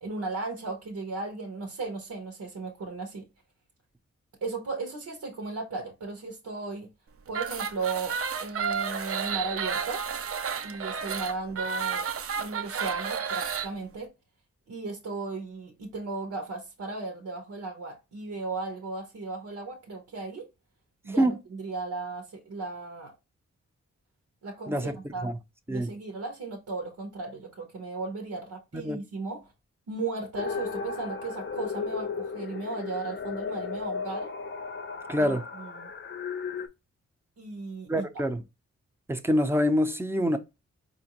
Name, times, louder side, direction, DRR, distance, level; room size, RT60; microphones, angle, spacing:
voice 1, 0.0-3.3 4.4-6.9 7.3-10.0 10.6-12.0 12.4-14.1 14.7-20.5 21.0-23.1 24.4-25.3 25.7-29.4 29.9-34.3 35.2-35.9 37.4-38.1, right 3 dB, 80° right, 1.0 m, -36 dB
sound 1, 7.3-13.7, right 6 dB, 50° right, 0.5 m, -31 dB
voice 2, 24.7-25.0 25.2-25.4 25.7-25.9 28.7-29.0 35.1-35.4 37.9-38.4 39.1-40.4, equal, 10° right, 0.6 m, -25 dB
sound 2, 30.4-36.7, left 5 dB, 40° left, 0.6 m, -35 dB
4.5 x 2.6 x 2.9 m
cardioid pair, 65°, 29 cm